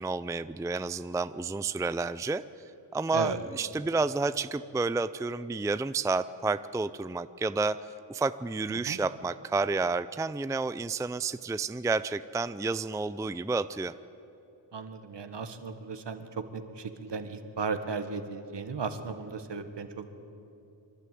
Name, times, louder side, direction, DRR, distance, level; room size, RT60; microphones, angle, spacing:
voice 1, 0.0-2.4 2.9-7.8 8.1-13.9, right 3 dB, 5° right, 14 dB, 0.4 m, -30 dB
voice 2, 14.7-20.1, right 4 dB, 60° right, 8 dB, 1.7 m, -36 dB
26.0 x 12.0 x 9.3 m, 2.8 s
cardioid pair, 60°, 47 cm